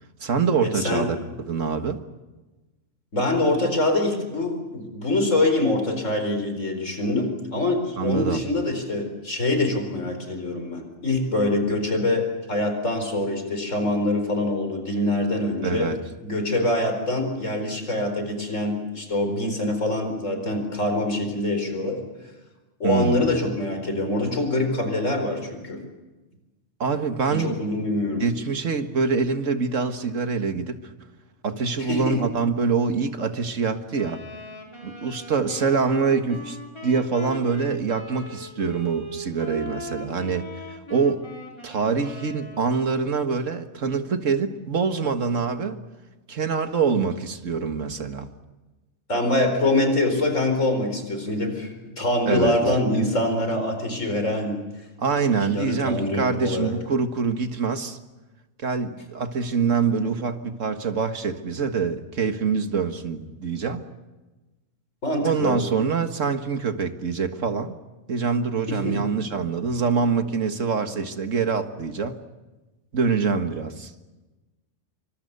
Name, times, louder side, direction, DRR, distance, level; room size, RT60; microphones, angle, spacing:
voice 1, 0.2-1.2 1.5-2.0 8.0-8.4 15.6-16.0 22.8-23.2 26.8-27.6 28.2-30.8 31.4-34.2 34.8-36.6 36.8-41.3 41.6-45.8 46.3-48.3 52.3-52.6 55.0-58.0 58.6-63.8 65.2-67.8 68.1-72.2 72.9-73.9, right 5 dB, 75° right, 7 dB, 2.0 m, -25 dB
voice 2, 0.7-1.1 3.1-15.9 16.2-22.0 22.8-25.8 27.3-28.2 31.8-32.2 49.1-54.6 55.5-56.7 65.0-65.5 68.7-69.0, left 2 dB, 75° left, 5 dB, 4.9 m, -24 dB
Wind instrument woodwind instrument, 33.9-43.0, right 1 dB, 20° left, 4.4 m, -39 dB
27.0 x 25.0 x 6.8 m, 1.1 s
omnidirectional pair, 1.3 m